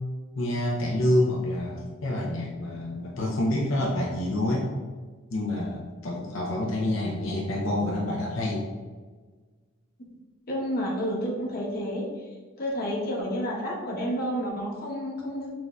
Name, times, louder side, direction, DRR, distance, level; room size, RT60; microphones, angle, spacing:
voice 1, 0.4-4.7 5.3-8.6, left 1 dB, 80° left, -2 dB, 0.6 m, -27 dB
voice 2, 10.5-12.1 12.6-15.5, equal, 45° left, -3 dB, 0.9 m, -30 dB
6.0 x 2.6 x 2.3 m, 1.4 s
head